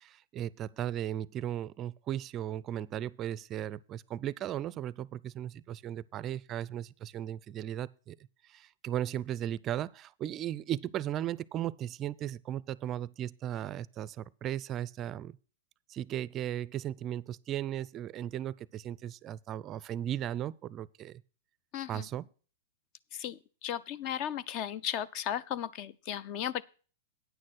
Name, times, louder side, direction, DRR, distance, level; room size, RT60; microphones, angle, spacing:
voice 1, 0.0-8.2 8.5-15.3 15.9-21.2 21.9-22.3, right 11 dB, 30° right, 0.4 m, -36 dB
voice 2, 23.2-26.6, left 10 dB, 40° left, 0.6 m, -35 dB
9.4 x 6.5 x 6.3 m
hypercardioid pair, 130°, 0 cm